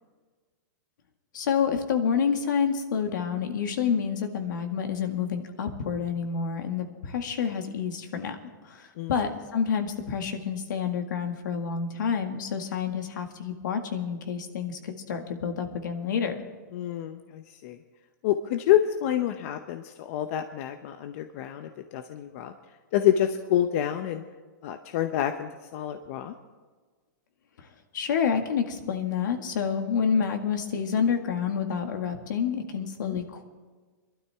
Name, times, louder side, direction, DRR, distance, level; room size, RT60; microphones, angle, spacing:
voice 1, 1.3-16.4 27.9-33.5, left 7 dB, 75° left, 5 dB, 1.9 m, -28 dB
voice 2, 16.7-17.8 18.2-22.5 22.9-24.2 24.6-26.3 33.0-33.2, left 11 dB, 45° left, 7 dB, 0.7 m, -27 dB
22.5 x 12.5 x 3.5 m, 1.4 s
hypercardioid pair, 150°, 10 cm